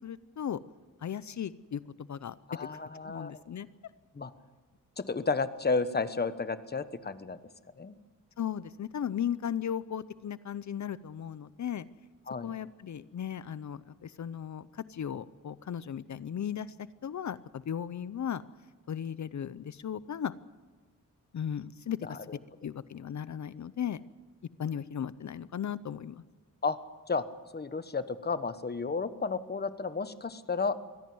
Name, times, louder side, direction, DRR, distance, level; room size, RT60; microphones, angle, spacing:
voice 1, 0.0-0.6 1.0-2.7 3.0-3.7 8.4-11.9 12.4-18.4 18.9-20.3 21.3-22.2 22.6-24.0 24.6-26.2, left 9 dB, 60° left, 16 dB, 0.7 m, -36 dB
voice 2, 2.5-3.4 4.1-4.3 5.0-7.4 7.8-7.9 12.3-12.5 22.1-22.4 26.6-26.8 27.1-27.2 27.5-30.8, left 4 dB, 30° left, 12 dB, 1.1 m, -32 dB
23.5 x 16.5 x 7.8 m, 1.4 s
wide cardioid pair, 125°, 32 cm